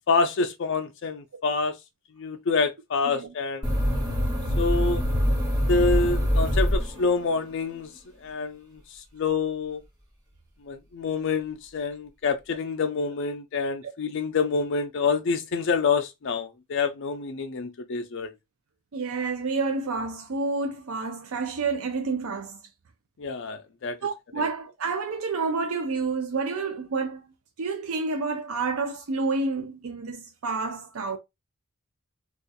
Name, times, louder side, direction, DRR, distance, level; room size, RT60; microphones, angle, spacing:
voice 1, 0.1-1.8 2.2-3.7 4.6-5.0 5.7-7.9 8.2-9.8 10.6-18.3 23.2-24.0, left 4 dB, 60° left, 0.4 m, -27 dB
sound 1, 3.6-7.4, equal, 20° right, 1.1 m, -24 dB
voice 2, 18.9-22.6 24.0-27.3 27.6-31.2, right 4 dB, 75° right, 0.5 m, -29 dB
2.4 x 2.4 x 3.9 m
head